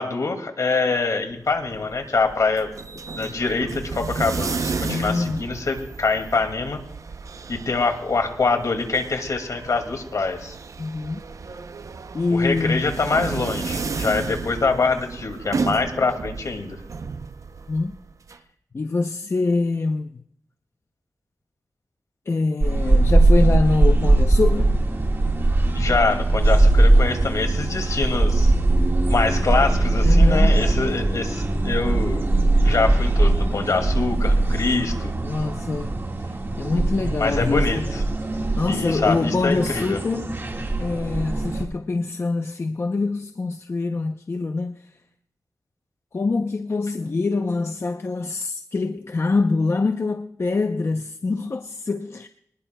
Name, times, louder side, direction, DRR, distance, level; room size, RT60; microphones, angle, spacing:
voice 1, 0.0-2.7 3.2-6.8 7.5-10.5 12.3-16.8 25.7-28.5 29.1-32.2 32.6-35.1 37.2-37.8 38.7-40.0, left 4 dB, 70° left, 2.2 m, -24 dB
sound 1, 1.3-18.4, right 4 dB, 65° right, 0.6 m, -33 dB
voice 2, 4.8-5.5 10.8-11.2 12.1-12.9 17.7-18.0 18.3-18.4 18.7-20.2 22.3-24.8 29.2-29.6 30.0-30.6 35.2-37.9 38.6-40.3 40.8-45.0 46.1-52.3, left 3 dB, 45° left, 0.6 m, -25 dB
sound 2, 22.6-41.6, right 2 dB, 40° right, 1.7 m, -20 dB
25.0 x 20.0 x 2.3 m
wide cardioid pair, 90°, 6 cm